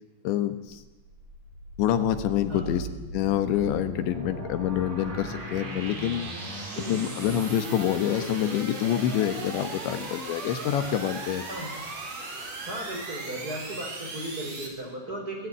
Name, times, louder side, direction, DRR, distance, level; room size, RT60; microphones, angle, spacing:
voice 1, 0.3-0.8 1.8-2.9 3.1-6.3 6.8-11.5, left 11 dB, 75° left, 9 dB, 3.6 m, -27 dB
sound 1, 0.7-14.7, right 3 dB, 40° right, 4.5 m, -38 dB
voice 2, 6.7-7.0 11.5-11.7 12.7-15.5, right 1 dB, 20° right, 1 dB, 5.2 m, -36 dB
23.0 x 17.0 x 9.4 m, 1.1 s
omnidirectional pair, 5.4 m